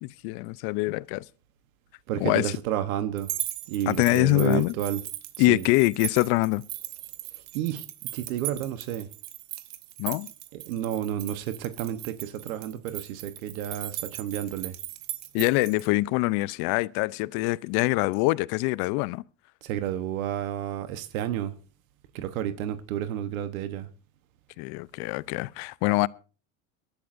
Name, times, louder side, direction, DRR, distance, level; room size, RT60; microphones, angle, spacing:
voice 1, 0.0-1.2 2.2-2.5 3.9-4.7 5.4-6.6 10.0-10.3 15.3-19.2 24.6-26.1, left 21 dB, 65° left, 0.6 m, -24 dB
voice 2, 2.1-3.3 3.7-5.0 5.5-5.7 7.5-7.8 8.1-9.1 10.5-14.7 19.6-21.5 22.1-23.9, right 11 dB, 85° right, 1.1 m, -31 dB
sound 1, 3.2-15.9, right 16 dB, 70° right, 1.5 m, -38 dB
23.5 x 11.5 x 2.6 m
supercardioid pair, 95°, 40 cm